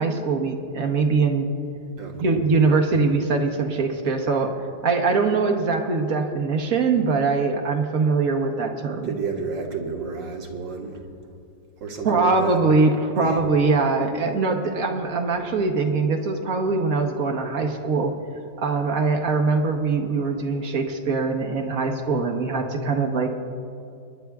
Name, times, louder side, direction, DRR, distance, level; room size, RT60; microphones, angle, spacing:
voice 1, 0.0-1.5 2.2-4.5 4.8-9.1 12.0-18.1 18.6-23.4, right 4 dB, 55° right, 3 dB, 1.2 m, -22 dB
voice 2, 2.0-2.9 9.0-11.0 11.8-12.6 13.2-13.4, right 5 dB, 80° right, 0 dB, 2.0 m, -31 dB
27.0 x 11.0 x 2.3 m, 2.5 s
omnidirectional pair, 2.0 m